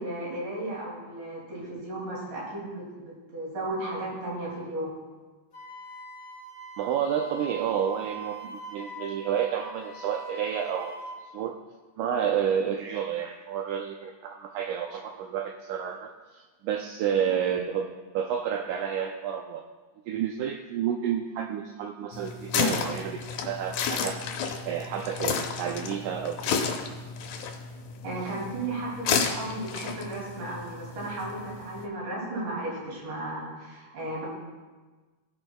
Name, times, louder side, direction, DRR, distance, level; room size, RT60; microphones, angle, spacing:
voice 1, 0.0-4.9 28.0-34.3, right 1 dB, 65° right, -4 dB, 4.0 m, -35 dB
Wind instrument woodwind instrument, 5.5-11.2, right 2 dB, 30° left, 1.5 m, -42 dB
voice 2, 6.8-10.9 11.3-11.6 12.0-17.9 18.1-19.6 20.1-24.2 24.7-26.6, right 8 dB, 90° right, 3 dB, 1.7 m, -30 dB
sound 1, 22.1-31.9, left 6 dB, 80° left, 2.5 m, -32 dB
17.5 x 6.3 x 2.2 m, 1.3 s
omnidirectional pair, 4.1 m